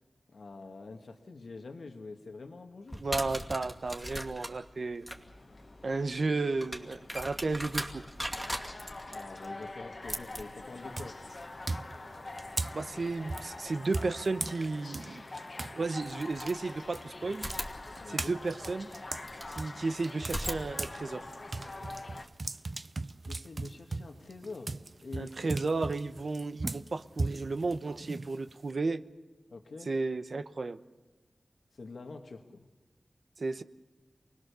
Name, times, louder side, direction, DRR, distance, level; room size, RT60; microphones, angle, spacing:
voice 1, 0.3-3.0 9.1-11.2 18.0-18.4 23.3-25.5 29.5-29.9 31.7-32.7, left 3 dB, 80° left, 4 dB, 1.6 m, -45 dB
sound 1, 2.9-13.7 15.2-15.3 16.0-17.0 17.3-19.6 20.2-22.3, equal, 5° right, 2.5 m, -41 dB
voice 2, 3.0-5.1 5.8-8.0 12.7-15.2 15.7-17.5 18.1-18.9 19.5-21.3 25.2-29.0 29.9-30.8 33.4-33.6, right 3 dB, 60° right, 11 dB, 1.0 m, -33 dB
sound 2, 5.1-22.3, left 2 dB, 45° left, 1.3 m, -45 dB
sound 3, 10.0-10.4 10.9-15.8 16.1-21.0 21.3-28.7, right 3 dB, 45° right, 0.7 m, -38 dB
28.5 x 20.0 x 6.9 m, 1.2 s
wide cardioid pair, 95°, 0 cm